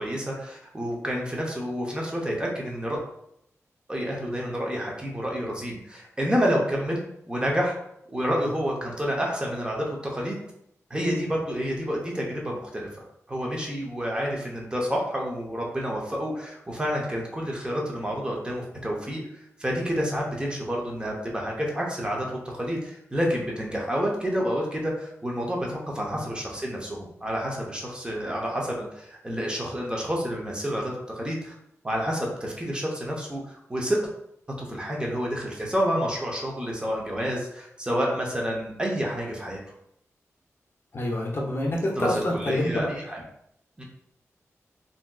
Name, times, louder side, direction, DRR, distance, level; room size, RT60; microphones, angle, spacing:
voice 1, 0.0-3.0 3.9-7.8 8.1-10.4 10.9-12.9 13.3-19.2 19.6-31.5 31.8-34.0 34.6-39.6 42.0-43.2 43.8-43.9, equal, 15° right, -2 dB, 0.7 m, -29 dB
voice 2, 40.9-42.9, left 1 dB, 45° left, -1 dB, 0.6 m, -27 dB
3.5 x 2.7 x 2.3 m, 0.75 s
wide cardioid pair, 100°, 5 cm